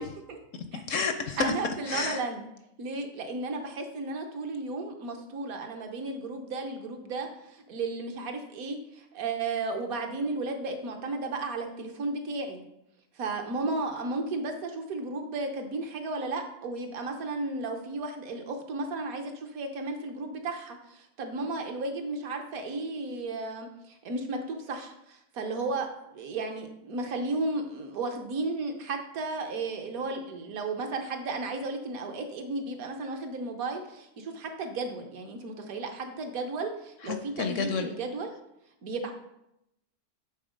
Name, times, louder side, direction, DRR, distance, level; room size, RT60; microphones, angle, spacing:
voice 1, 0.0-0.4 0.7-0.8 1.4-2.4 2.8-12.6 13.2-38.3 38.8-39.1, right 3 dB, 70° right, 4 dB, 1.3 m, -34 dB
voice 2, 0.5-1.5 1.9-2.2 37.0-37.9, left 5 dB, 70° left, 8 dB, 0.8 m, -30 dB
8.3 x 3.8 x 5.0 m, 0.83 s
omnidirectional pair, 1.6 m